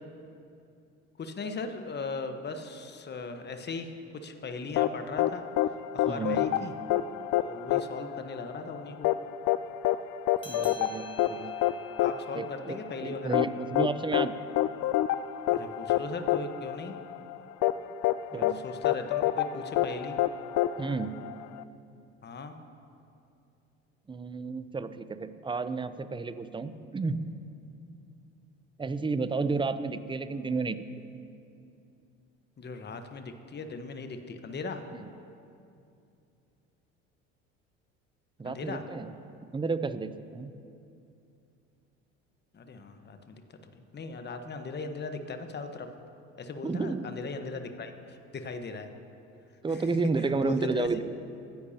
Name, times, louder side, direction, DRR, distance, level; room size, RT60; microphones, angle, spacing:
voice 1, 1.2-5.4 5.9-6.7 7.4-9.1 12.0-13.4 15.5-16.9 18.3-20.2 22.2-22.6 32.6-34.8 38.4-38.8 42.5-43.3 43.7-45.9 46.4-48.9 49.7-49.9 50.2-50.9, left 4 dB, 30° left, 7 dB, 1.2 m, -38 dB
sound 1, 4.8-21.6, left 13 dB, 55° left, 0.5 m, -28 dB
voice 2, 6.1-6.4 10.4-11.5 12.3-14.3 18.3-18.6 20.8-21.1 24.1-27.2 28.8-30.8 38.4-39.1 39.5-40.5 46.6-47.1 49.6-51.0, right 4 dB, 15° right, 12 dB, 0.7 m, -31 dB
sound 2, 10.4-15.3, left 2 dB, 15° left, 1.5 m, -52 dB
23.5 x 10.5 x 2.9 m, 2.6 s
hypercardioid pair, 70°, 35 cm